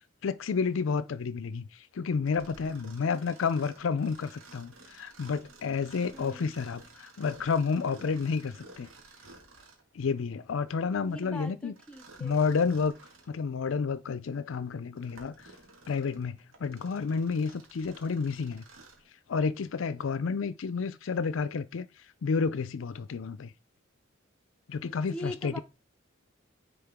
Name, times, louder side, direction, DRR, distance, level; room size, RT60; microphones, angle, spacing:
voice 1, 0.2-8.9 9.9-11.7 12.2-12.9 13.3-15.5 15.9-18.6 19.3-21.9 22.2-23.5 24.7-25.6, left 5 dB, 75° left, 0.4 m, -30 dB
Mechanisms, 2.2-9.9 11.7-13.4 13.9-14.0 14.7-19.1, right 3 dB, 85° right, 1.8 m, -54 dB
voice 2, 6.1-6.5 11.0-12.6 25.1-25.6, equal, 5° left, 0.8 m, -41 dB
9.5 x 3.6 x 3.5 m
head